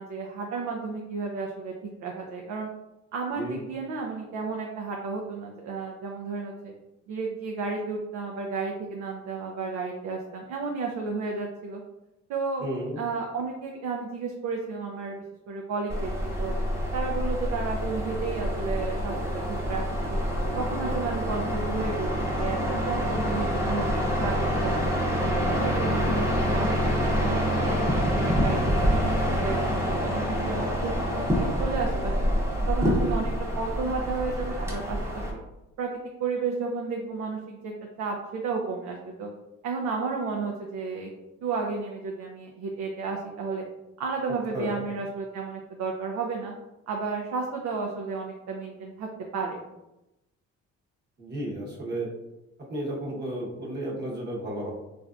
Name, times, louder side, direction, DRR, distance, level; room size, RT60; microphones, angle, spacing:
voice 1, 0.0-1.7 2.0-2.7 3.1-6.7 7.1-11.8 12.3-12.7 13.0-16.5 16.9-19.4 19.7-19.8 20.1-20.2 20.5-23.9 24.2-24.7 25.2-27.8 28.2-32.3 32.7-35.4 35.8-35.9 36.2-37.7 38.0-39.3 39.6-41.1 41.4-43.7 44.0-46.5 46.9-49.6, right 4 dB, 70° right, 0 dB, 0.5 m, -32 dB
voice 2, 12.6-13.0 20.5-20.6 20.8-21.0 33.0-33.4 44.3-44.8 51.2-52.1 52.7-54.7, right 1 dB, 35° right, -3 dB, 1.0 m, -33 dB
sound 1, 15.9-35.3, equal, 10° right, 0.9 m, -26 dB
3.2 x 2.5 x 2.3 m, 0.95 s
cardioid pair, 90°, 30 cm